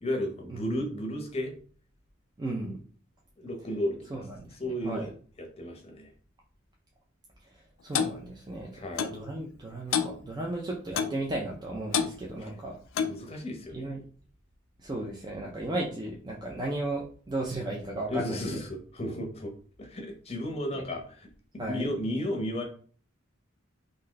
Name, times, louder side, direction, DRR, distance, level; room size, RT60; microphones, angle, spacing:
voice 1, 0.0-1.5 3.4-4.0 4.6-5.1 5.4-6.1 8.7-9.1 13.1-13.9 18.1-19.5 19.8-21.3 21.7-22.6, left 1 dB, 30° left, 3 dB, 0.7 m, -33 dB
voice 2, 2.4-2.8 4.1-5.1 7.5-12.8 13.7-14.0 14.8-18.6 20.7-20.8 21.6-21.9, right 2 dB, 20° right, -1 dB, 0.4 m, -35 dB
Clock, 8.0-8.2 9.0-9.2 9.9-10.2 11.0-11.2 11.9-12.1 13.0-13.2, left 7 dB, 65° left, 0.3 m, -27 dB
2.6 x 2.2 x 3.8 m, 0.43 s
head